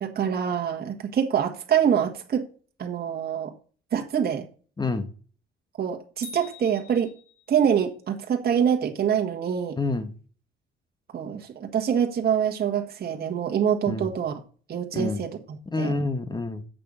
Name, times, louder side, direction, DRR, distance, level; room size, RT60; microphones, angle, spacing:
voice 1, 0.0-2.4 2.8-3.5 3.9-4.4 5.8-7.1 7.5-9.8 11.1-14.3 14.7-15.9, right 8 dB, 50° right, 1.4 m, -25 dB
voice 2, 4.8-5.1 9.8-10.1 13.9-14.1 14.9-15.2 15.7-16.6, left 3 dB, 20° left, 1.1 m, -27 dB
sound 1, 6.2-7.8, left 4 dB, 40° left, 4.0 m, -46 dB
7.7 x 6.4 x 5.4 m
cardioid pair, 90°, 20 cm